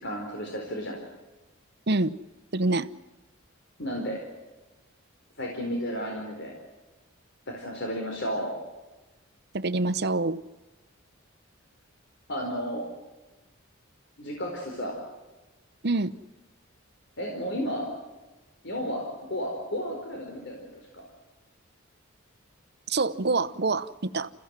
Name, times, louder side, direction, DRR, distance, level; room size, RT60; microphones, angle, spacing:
voice 1, 0.0-1.0 3.8-4.2 5.4-6.5 7.5-8.6 12.3-12.9 14.2-15.0 17.2-17.9 18.6-21.0, equal, 60° left, 1 dB, 4.3 m, -33 dB
voice 2, 2.5-2.9 9.5-10.4 15.8-16.1 22.9-24.3, right 3 dB, 55° right, 14 dB, 0.9 m, -26 dB
29.0 x 15.5 x 7.6 m, 1.1 s
head